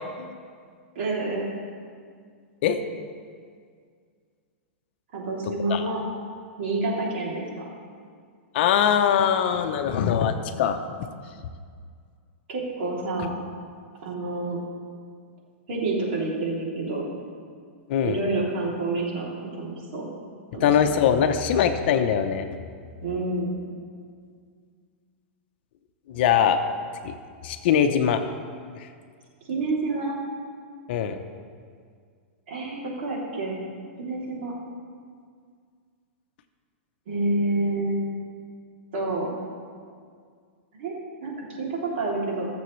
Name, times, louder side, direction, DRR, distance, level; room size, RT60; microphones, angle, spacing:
voice 1, 0.9-1.4 5.1-6.0 6.6-7.6 12.5-13.3 14.0-14.6 15.7-17.0 18.0-20.1 20.5-20.7 23.0-23.5 29.5-30.2 32.5-33.6 34.0-34.5 37.1-38.1 38.9-39.3 40.8-40.9 41.2-42.5, right 2 dB, 60° right, -3 dB, 3.0 m, -28 dB
voice 2, 8.5-10.8 17.9-18.2 20.6-22.5 26.1-26.6 27.0-27.1 27.4-28.2 30.9-31.2, left 8 dB, 55° left, 7 dB, 0.8 m, -22 dB
20.5 x 7.0 x 3.2 m, 2.1 s
supercardioid pair, 155°, 7 cm